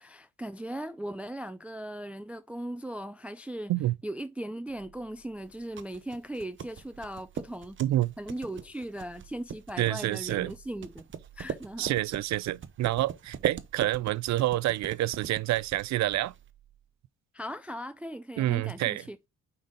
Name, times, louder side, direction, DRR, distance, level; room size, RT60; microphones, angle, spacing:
voice 1, 0.0-3.7 4.0-7.8 8.2-11.1 11.4-11.9 17.3-19.2, right 1 dB, 5° right, 0.4 m, -38 dB
sound 1, 4.7-6.0 6.8-8.4 8.9-10.4 11.1-12.7 13.2-14.6 15.4-17.0, right 11 dB, 20° right, 1.7 m, -60 dB
sound 2, 5.4-16.5, right 7 dB, 40° right, 0.8 m, -41 dB
voice 2, 7.8-8.1 9.8-10.5 11.8-16.3 18.4-19.0, right 15 dB, 65° right, 0.4 m, -28 dB
5.5 x 4.0 x 5.0 m
cardioid pair, 90°, 30 cm